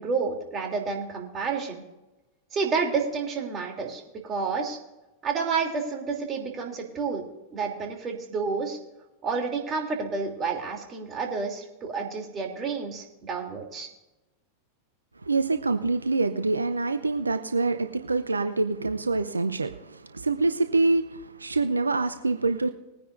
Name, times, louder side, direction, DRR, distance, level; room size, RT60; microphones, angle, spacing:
voice 1, 0.0-1.8 2.5-4.8 5.2-8.8 9.2-13.9, right 5 dB, 30° right, 2 dB, 3.0 m, -30 dB
voice 2, 15.2-22.7, right 3 dB, 90° right, 9 dB, 0.6 m, -26 dB
21.0 x 10.0 x 2.6 m, 1.0 s
figure-of-eight pair, 95°, 0 cm